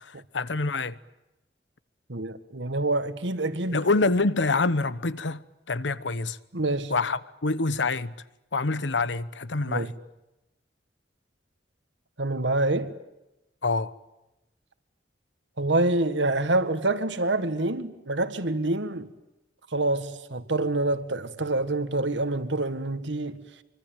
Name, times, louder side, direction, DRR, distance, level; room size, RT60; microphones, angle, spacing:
voice 1, 0.3-0.9 3.7-5.4 5.7-6.4 6.9-8.1 8.5-9.9 13.6-13.9, left 3 dB, 85° left, 1.1 m, -26 dB
voice 2, 2.1-3.8 6.5-6.9 9.7-9.9 12.2-12.9 15.6-19.1 19.7-23.4, right 2 dB, 80° right, 1.9 m, -26 dB
25.5 x 24.5 x 9.1 m
head